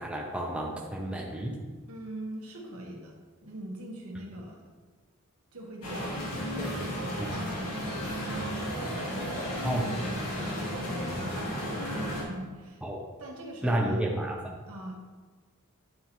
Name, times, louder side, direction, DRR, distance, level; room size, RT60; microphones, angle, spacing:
voice 1, 0.0-1.6 7.2-7.3 9.6-9.9 12.8-13.1 13.6-14.5, right 1 dB, 5° right, -1 dB, 0.6 m, -31 dB
voice 2, 1.9-3.1 3.4-4.6 5.5-8.2 8.5-11.5 12.0-12.8 13.2-14.1 14.7-15.0, right 1 dB, 90° right, -2 dB, 1.4 m, -42 dB
sound 1, 5.8-12.2, equal, 90° left, 1.7 m, -33 dB
9.3 x 4.3 x 3.0 m, 1.4 s
head